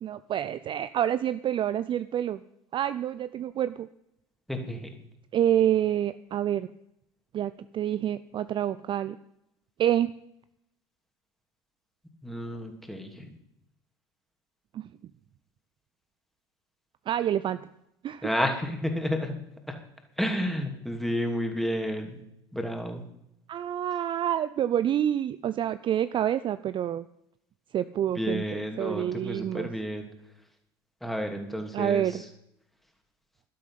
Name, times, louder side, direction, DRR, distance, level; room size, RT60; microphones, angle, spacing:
voice 1, 0.0-2.4 2.7-3.9 5.3-6.7 7.3-9.2 9.8-10.1 14.7-14.9 17.1-17.6 18.0-18.3 23.5-27.0 27.7-29.7 31.7-32.2, right 10 dB, 35° right, 14 dB, 0.5 m, -27 dB
voice 2, 4.5-4.9 12.2-13.3 18.2-19.3 19.7-19.8 20.2-22.2 22.5-23.0 28.1-30.0 31.0-32.0, equal, ahead, 3 dB, 2.9 m, -31 dB
13.0 x 12.0 x 5.8 m, 0.79 s
figure-of-eight pair, 70°, 15 cm